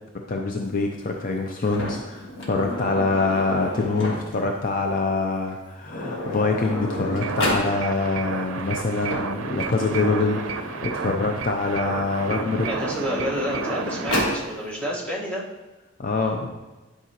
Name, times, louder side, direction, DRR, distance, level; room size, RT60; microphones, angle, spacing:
voice 1, 0.3-12.7 16.0-16.5, left 3 dB, 45° left, 2 dB, 0.5 m, -25 dB
Sliding door, 1.6-4.5 5.5-5.6 5.8-7.7 8.8-11.3 12.1-14.4, left 1 dB, 70° left, 1.6 m, -31 dB
sound 1, 7.2-14.3, right 5 dB, 85° right, 0.5 m, -32 dB
voice 2, 12.6-15.4, equal, 5° left, -5 dB, 1.3 m, -29 dB
11.0 x 4.8 x 2.9 m, 1.1 s
head